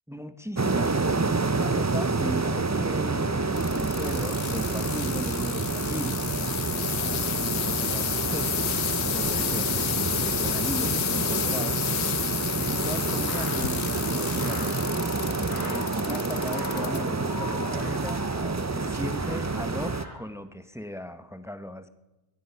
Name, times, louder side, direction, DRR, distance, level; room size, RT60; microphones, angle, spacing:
voice 1, 0.1-8.6 9.0-9.9 10.2-11.8 12.6-14.8 15.6-18.3 18.7-21.9, left 1 dB, 5° right, 10 dB, 0.8 m, -37 dB
sound 1, 0.6-20.0, right 3 dB, 25° right, 0.4 m, -28 dB
sound 2, 3.5-17.0 17.5-18.0 18.6-18.7, left 10 dB, 90° left, 1.0 m, -31 dB
sound 3, 12.6-20.1, equal, 50° right, 4.2 m, -40 dB
20.0 x 12.0 x 5.6 m, 1.0 s
omnidirectional pair, 1.1 m